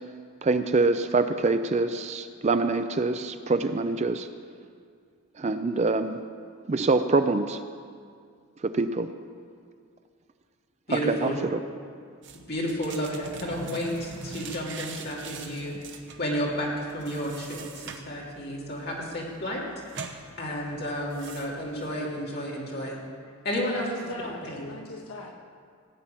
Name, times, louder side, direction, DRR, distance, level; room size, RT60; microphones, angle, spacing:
voice 1, 0.4-4.3 5.4-6.2 6.7-7.6 8.6-9.1 11.1-11.3, right 3 dB, 30° right, 10 dB, 0.4 m, -25 dB
voice 2, 10.9-11.3 12.5-15.8 16.2-19.6 20.4-23.0 23.4-23.9 24.5-24.7, equal, 45° left, -4 dB, 2.9 m, -31 dB
sound 1, 12.2-21.9, right 4 dB, 55° right, 1.0 m, -42 dB
voice 3, 23.5-25.3, left 2 dB, 75° left, 2 dB, 1.5 m, -39 dB
16.5 x 5.8 x 9.1 m, 2.2 s
head